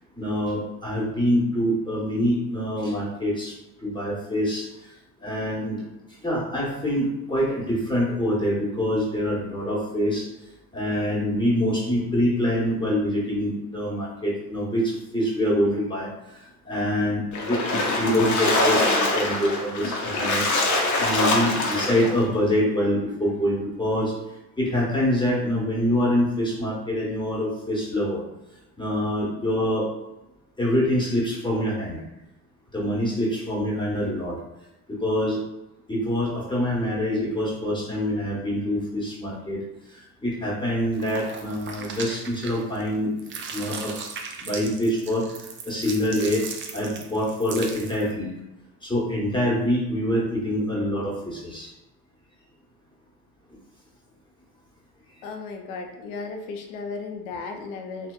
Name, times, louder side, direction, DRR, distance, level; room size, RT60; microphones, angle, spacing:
voice 1, 0.1-3.5 3.8-4.9 5.2-5.8 6.2-10.3 10.7-20.5 21.0-24.1 24.6-28.2 28.8-29.9 30.6-32.0 32.7-34.4 34.9-35.4 35.9-39.6 39.9-43.1 43.5-44.1 44.4-45.3 45.6-46.4 46.7-48.3 48.8-51.7, equal, 10° left, -5 dB, 1.1 m, -25 dB
Splash splatter, 17.3-22.2, left 2 dB, 45° left, 0.6 m, -24 dB
sound 1, 40.9-42.9 43.2-48.1, right 5 dB, 30° right, 0.3 m, -38 dB
voice 2, 55.2-58.1, left 4 dB, 85° left, 4 dB, 0.5 m, -35 dB
2.7 x 2.0 x 2.3 m, 0.94 s
hypercardioid pair, 60°, 44 cm